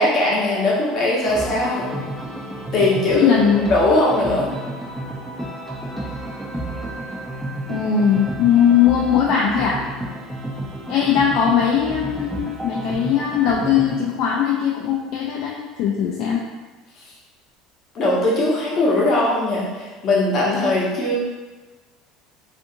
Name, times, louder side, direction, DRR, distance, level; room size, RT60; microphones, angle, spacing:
voice 1, 0.0-1.9 2.7-3.3 3.7-4.5 17.9-21.1, left 2 dB, 45° left, -5 dB, 0.9 m, -19 dB
sound 1, 1.2-14.1, right 1 dB, 5° right, 0.5 m, -31 dB
voice 2, 3.1-3.7 7.7-9.8 10.9-15.5 15.8-16.4, left 8 dB, 65° left, -2 dB, 0.3 m, -19 dB
2.5 x 2.5 x 2.6 m, 1.3 s
supercardioid pair, 115°, 0 cm